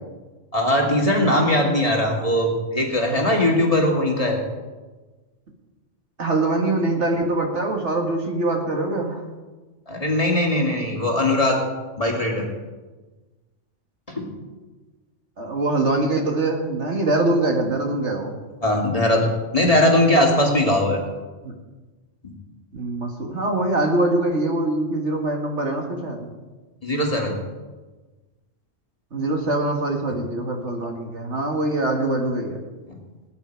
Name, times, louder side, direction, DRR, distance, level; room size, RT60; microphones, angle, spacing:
voice 1, 0.5-4.4 9.9-11.6 12.0-12.5 14.1-14.3 18.6-21.0 22.2-22.3 26.8-27.4 32.9-33.0, left 1 dB, 30° left, -1 dB, 2.4 m, -20 dB
voice 2, 6.2-9.2 15.4-18.3 21.4-21.5 22.7-26.3 29.1-32.6, right 2 dB, 65° right, 1 dB, 2.2 m, -23 dB
19.5 x 9.8 x 4.7 m, 1.3 s
omnidirectional pair, 1.3 m